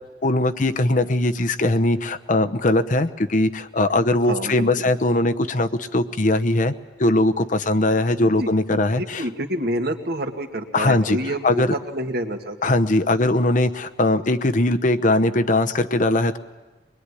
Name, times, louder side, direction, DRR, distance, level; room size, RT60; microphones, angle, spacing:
voice 1, 0.2-6.7 7.0-9.2 10.7-11.2 11.4-11.7 12.6-16.4, left 2 dB, 45° left, 8 dB, 0.9 m, -20 dB
voice 2, 4.2-4.7 8.4-12.7, right 1 dB, 60° right, 4 dB, 2.1 m, -28 dB
24.0 x 21.5 x 9.9 m, 1.2 s
head